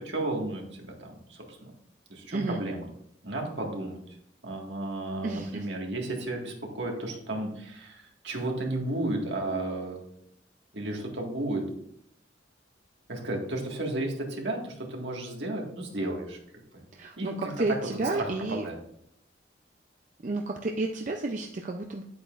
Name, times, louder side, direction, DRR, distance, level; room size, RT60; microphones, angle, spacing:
voice 1, 0.0-1.5 2.1-2.9 3.2-4.0 4.4-10.0 10.7-11.7 13.1-16.4 16.7-16.8 17.2-17.3 18.1-18.8, right 2 dB, 70° right, 0 dB, 1.8 m, -33 dB
voice 2, 2.3-2.6 5.2-5.7 16.9-18.6 20.2-22.0, right 2 dB, 40° right, 3 dB, 0.5 m, -31 dB
9.0 x 8.5 x 2.5 m, 0.71 s
head